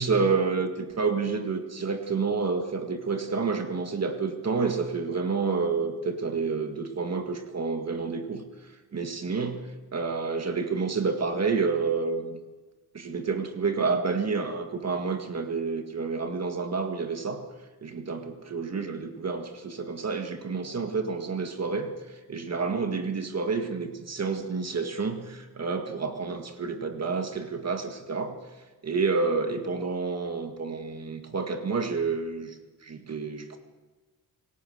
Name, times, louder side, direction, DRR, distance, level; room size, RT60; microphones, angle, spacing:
voice 1, 0.0-12.4 12.9-17.4 17.8-28.4 28.8-33.6, right 4 dB, 35° right, 6 dB, 1.9 m, -29 dB
27.0 x 18.5 x 6.6 m, 1.3 s
wide cardioid pair, 175°, 42 cm